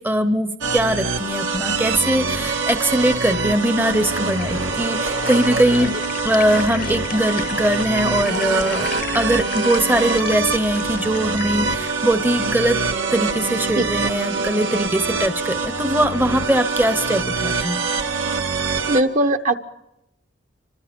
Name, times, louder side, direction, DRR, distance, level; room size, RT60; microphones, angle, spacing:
voice 1, 0.0-6.0 6.2-12.8 13.1-17.8, right 1 dB, 10° right, 9 dB, 0.8 m, -21 dB
sound 1, 0.6-19.0, right 4 dB, 75° right, 2.0 m, -24 dB
sound 2, 3.7-11.6, left 6 dB, 45° left, 0.8 m, -35 dB
voice 2, 13.8-14.5 18.9-19.6, right 1 dB, 40° right, 9 dB, 1.0 m, -21 dB
29.0 x 25.0 x 5.3 m, 0.86 s
head